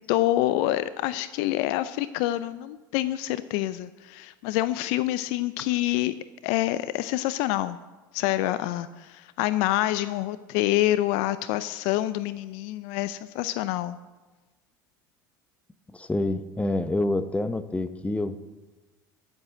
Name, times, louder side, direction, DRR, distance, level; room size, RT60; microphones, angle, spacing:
voice 1, 0.1-6.1 6.4-7.8 8.1-14.0, left 15 dB, 65° left, 15 dB, 0.5 m, -27 dB
voice 2, 15.9-18.4, left 2 dB, 10° left, 12 dB, 1.0 m, -27 dB
13.5 x 8.0 x 7.6 m, 1.2 s
hypercardioid pair, 80°, 11 cm